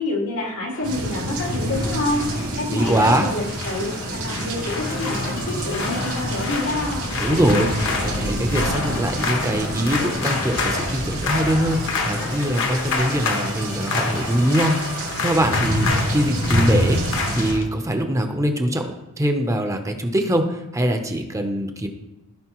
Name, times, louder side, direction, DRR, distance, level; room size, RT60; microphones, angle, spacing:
voice 1, 0.0-7.1, left 2 dB, 85° left, -2 dB, 2.3 m, -27 dB
sound 1, 0.7-17.6, left 4 dB, 60° left, 1.1 m, -29 dB
sound 2, 0.8-17.5, right 1 dB, 90° right, 2.1 m, -28 dB
voice 2, 2.7-3.3 7.2-7.7 8.0-14.7 15.2-21.9, right 1 dB, 15° right, 5 dB, 0.7 m, -22 dB
sound 3, 4.8-17.7, left 1 dB, 40° left, 1.0 m, -33 dB
15.0 x 5.1 x 3.1 m, 0.98 s
head